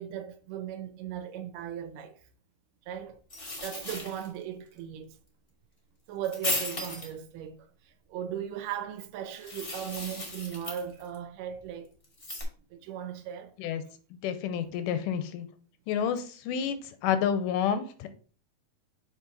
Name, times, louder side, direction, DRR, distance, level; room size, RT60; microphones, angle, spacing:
voice 1, 0.0-2.2 2.9-3.2 3.6-5.2 6.1-7.7 8.1-11.9 12.7-13.6, right 9 dB, 80° right, 2.2 m, -37 dB
sound 1, 3.3-4.3 6.2-7.1 9.3-11.1 12.0-12.4, left 2 dB, 30° left, 1.0 m, -35 dB
voice 2, 14.2-15.5 15.9-18.1, left 8 dB, 85° left, 2.2 m, -29 dB
6.3 x 4.2 x 3.9 m
omnidirectional pair, 3.7 m